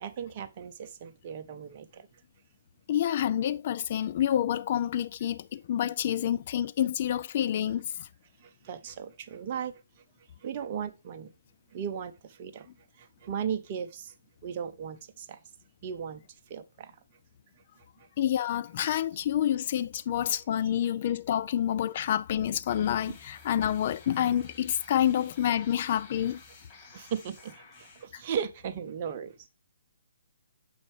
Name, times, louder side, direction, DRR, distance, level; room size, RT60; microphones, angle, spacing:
voice 1, 0.0-2.1 8.4-9.8 10.4-11.3 11.7-12.7 13.0-14.1 14.4-15.4 15.8-16.2 16.5-16.9 26.9-29.3, right 7 dB, 35° right, 0.6 m, -36 dB
voice 2, 2.9-8.1 18.2-26.4 28.1-28.2, left 10 dB, 40° left, 0.4 m, -28 dB
sound 1, 22.7-28.0, left 5 dB, 25° left, 2.5 m, -52 dB
7.0 x 5.3 x 3.2 m
figure-of-eight pair, 135°, 0 cm